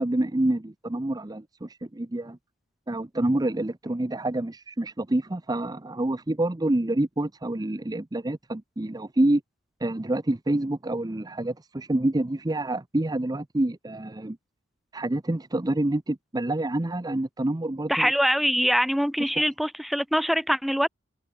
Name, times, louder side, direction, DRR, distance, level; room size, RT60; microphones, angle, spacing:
voice 1, 0.0-2.4 2.9-9.4 9.8-14.4 14.9-18.1, right 1 dB, 20° right, 0.6 m, -27 dB
voice 2, 17.9-20.9, equal, ahead, 1.1 m, -23 dB
head